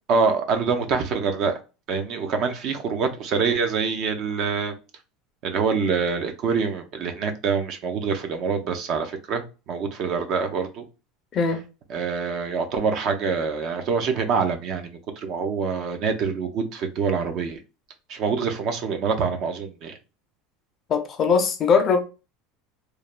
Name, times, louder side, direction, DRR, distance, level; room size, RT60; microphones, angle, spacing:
voice 1, 0.1-1.6 1.9-4.7 5.4-10.8 11.9-17.6 18.1-20.0, right 5 dB, 40° right, 0.5 m, -25 dB
voice 2, 20.9-22.0, left 5 dB, 30° left, 0.4 m, -20 dB
3.1 x 2.1 x 2.3 m
cardioid pair, 160°, 0 cm